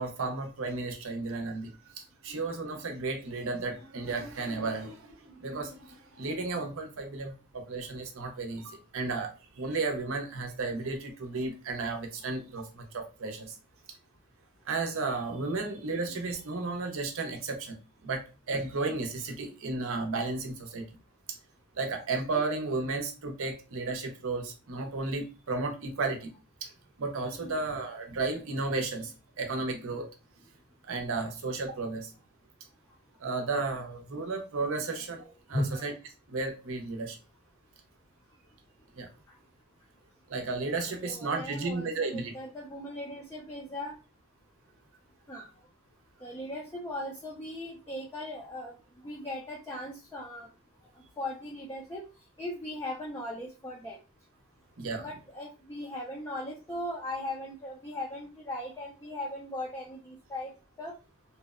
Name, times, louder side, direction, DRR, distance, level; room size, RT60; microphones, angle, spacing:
voice 1, 0.0-13.5 14.7-17.8 18.0-20.8 21.7-26.3 26.6-26.7 27.0-30.0 30.9-32.1 33.2-35.9 36.3-37.2 39.0-39.1 40.3-42.3 54.8-55.1, right 3 dB, 60° right, 0.5 m, -33 dB
voice 2, 35.2-35.9 39.3-39.4 40.7-44.0 45.3-45.5 46.2-50.5 51.2-52.0 52.4-54.0 55.0-60.5 60.8-60.9, left 1 dB, 10° left, 0.3 m, -38 dB
2.7 x 2.0 x 2.3 m
head